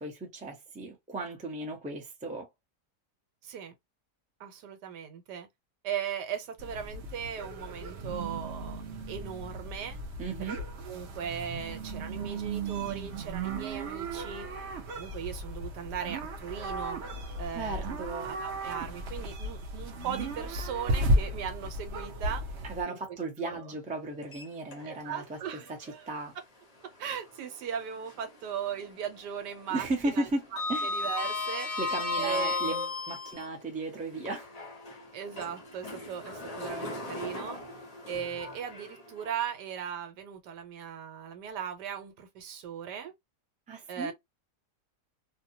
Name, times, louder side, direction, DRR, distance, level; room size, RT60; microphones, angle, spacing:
voice 1, 0.0-2.5 10.2-10.6 17.5-18.3 22.6-25.4 26.1-26.3 29.7-30.4 30.7-30.9 31.8-34.5 43.7-44.1, right 2 dB, 10° right, 0.4 m, -35 dB
voice 2, 3.4-3.7 4.4-5.5 5.8-10.0 10.8-14.5 15.0-17.0 17.4-22.4 22.9-23.0 23.4-23.7 24.8-26.1 26.4-26.5 27.0-30.3 30.8-32.8 35.1-37.6 38.1-43.1 43.9-44.1, right 8 dB, 80° right, 1.3 m, -38 dB
sound 1, 6.6-22.8, right 1 dB, 55° right, 0.8 m, -35 dB
Sliding door, 24.2-25.2 25.6-25.7 27.4-28.4 28.7-29.1 29.4-33.5 34.1-39.3, left 3 dB, 40° left, 0.5 m, -36 dB
2.7 x 2.2 x 2.7 m
omnidirectional pair, 1.8 m